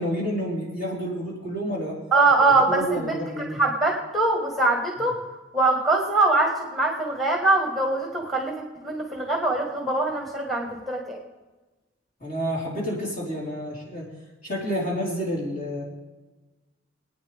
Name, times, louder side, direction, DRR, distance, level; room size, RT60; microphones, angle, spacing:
voice 1, 0.0-2.0 2.4-3.6 12.2-14.1 14.4-15.8, equal, 50° left, -5 dB, 4.4 m, -29 dB
voice 2, 2.1-5.2 5.5-11.2, right 2 dB, ahead, 0 dB, 1.5 m, -23 dB
25.5 x 9.5 x 3.5 m, 1.2 s
head